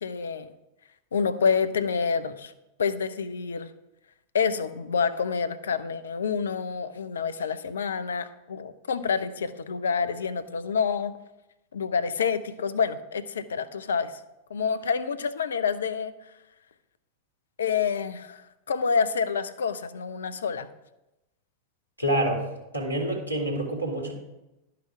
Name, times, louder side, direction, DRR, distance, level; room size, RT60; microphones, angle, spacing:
voice 1, 0.0-0.5 1.1-2.5 2.8-3.7 4.3-11.1 11.7-14.2 14.5-16.1 17.6-20.7, left 6 dB, 65° left, 12 dB, 0.6 m, -28 dB
voice 2, 22.0-22.5 22.7-24.1, right 1 dB, 90° left, 1 dB, 1.9 m, -27 dB
11.0 x 5.8 x 4.8 m, 0.93 s
figure-of-eight pair, 90°, 0 cm